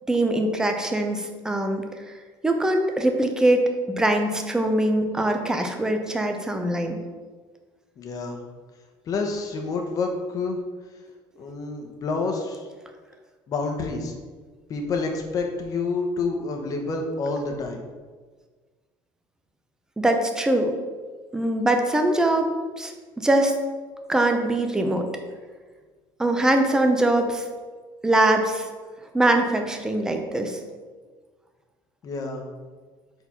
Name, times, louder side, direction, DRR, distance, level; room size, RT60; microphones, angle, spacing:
voice 1, 0.1-2.1 2.4-7.0 20.0-20.7 21.3-22.5 22.8-23.6 24.1-25.1 26.2-27.4 28.0-28.7 29.1-30.6, right 1 dB, 5° right, 4 dB, 0.6 m, -22 dB
voice 2, 8.0-8.4 9.1-10.6 11.4-12.7 13.5-14.1 14.7-17.8 32.0-32.4, left 3 dB, 40° left, 3 dB, 0.9 m, -28 dB
4.7 x 4.0 x 5.7 m, 1.4 s
cardioid pair, 150°, 10 cm